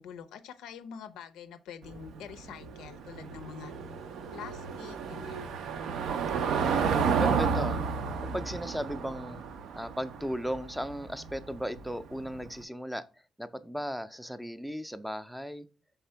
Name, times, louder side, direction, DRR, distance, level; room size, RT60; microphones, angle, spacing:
voice 1, 0.0-3.7 4.3-5.6, left 8 dB, 90° left, 0.4 m, -46 dB
Car passing by / Engine, 1.8-12.5, right 6 dB, 80° right, 0.4 m, -32 dB
voice 2, 6.4-7.8 8.3-9.4 9.7-13.0 13.4-15.7, equal, ahead, 0.4 m, -36 dB
3.6 x 3.3 x 4.4 m
cardioid pair, 90°, 0 cm